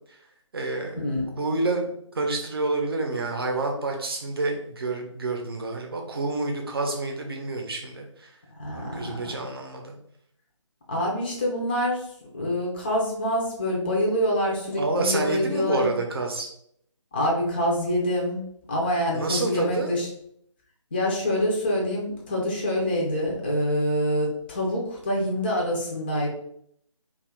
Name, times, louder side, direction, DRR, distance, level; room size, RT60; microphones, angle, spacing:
voice 1, 0.5-0.9 1.4-8.3 8.7-10.0 14.7-16.5 19.1-19.9, right 2 dB, 45° right, 2 dB, 0.7 m, -28 dB
voice 2, 8.6-9.2 10.9-12.0 12.3-15.9 17.1-18.4 18.7-20.1 20.9-26.3, equal, 20° left, -2 dB, 0.4 m, -26 dB
2.4 x 2.4 x 3.3 m, 0.69 s
figure-of-eight pair, 155°, 17 cm